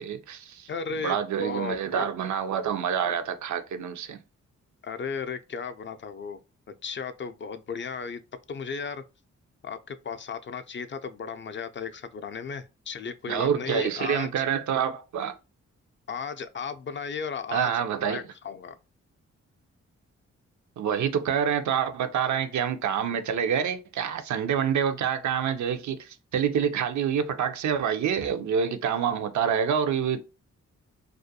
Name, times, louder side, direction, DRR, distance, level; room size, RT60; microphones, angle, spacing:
voice 1, 0.0-0.7 1.0-4.2 13.3-15.3 17.5-18.2 20.8-30.2, right 8 dB, 70° right, 0.5 m, -27 dB
voice 2, 0.7-2.1 4.8-6.4 6.8-8.2 8.5-9.0 9.6-14.5 16.1-18.8, left 5 dB, 40° left, 0.4 m, -35 dB
2.4 x 2.2 x 2.7 m
supercardioid pair, 45°, 31 cm